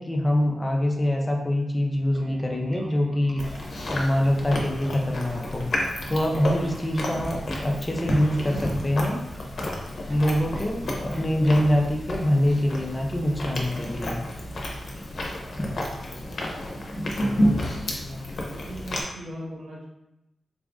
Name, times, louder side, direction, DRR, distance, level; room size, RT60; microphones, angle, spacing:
voice 1, 0.0-3.4 3.9-5.7 6.1-9.2 10.1-14.2 15.6-15.7, left 1 dB, 20° left, 1 dB, 0.6 m, -24 dB
Bass guitar, 2.1-11.7, right 1 dB, 40° right, 0.4 m, -43 dB
Chewing mastication, 3.4-19.0, left 1 dB, 60° left, 0.8 m, -31 dB
voice 2, 17.2-19.8, equal, 85° right, -5 dB, 1.3 m, -39 dB
4.0 x 2.4 x 3.6 m, 0.89 s
wide cardioid pair, 95°, 0 cm